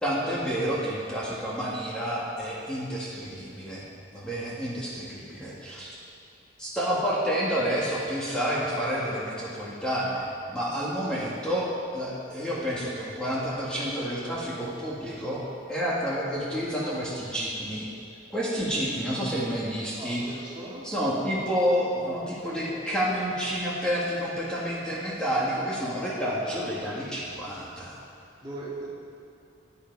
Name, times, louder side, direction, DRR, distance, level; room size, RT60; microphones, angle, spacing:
voice 1, 0.0-3.8 4.1-5.9 6.6-15.4 15.7-17.9 18.3-20.2 20.8-28.0, equal, 5° left, -8 dB, 1.9 m, -29 dB
voice 2, 19.9-20.8 28.4-28.9, right 2 dB, 25° right, -6 dB, 2.1 m, -39 dB
16.0 x 9.7 x 4.7 m, 2.4 s
head